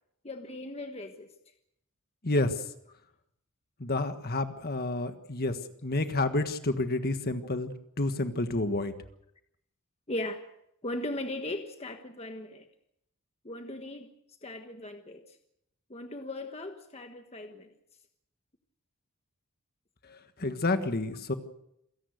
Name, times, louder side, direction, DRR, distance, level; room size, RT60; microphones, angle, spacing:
voice 1, 0.2-1.3 10.1-10.4 10.8-12.7 13.4-14.1 14.4-15.4 15.9-17.7, left 1 dB, 30° left, 5 dB, 1.3 m, -38 dB
voice 2, 2.2-2.6 3.8-8.9 20.0-21.3, left 2 dB, 45° left, 9 dB, 1.6 m, -30 dB
27.5 x 17.5 x 6.6 m, 0.77 s
head